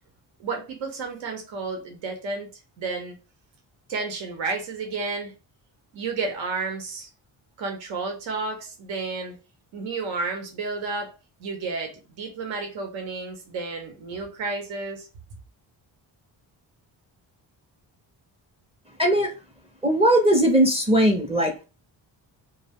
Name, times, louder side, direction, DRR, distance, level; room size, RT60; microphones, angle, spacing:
voice 1, 0.4-2.5 2.8-3.2 3.9-5.3 5.9-7.1 7.6-9.4 9.7-11.1 11.4-15.1, right 3 dB, 85° right, 0.8 m, -31 dB
voice 2, 19.0-19.3 19.8-21.6, right 1 dB, 15° right, 0.4 m, -19 dB
2.2 x 2.0 x 3.4 m
cardioid pair, 85°, 44 cm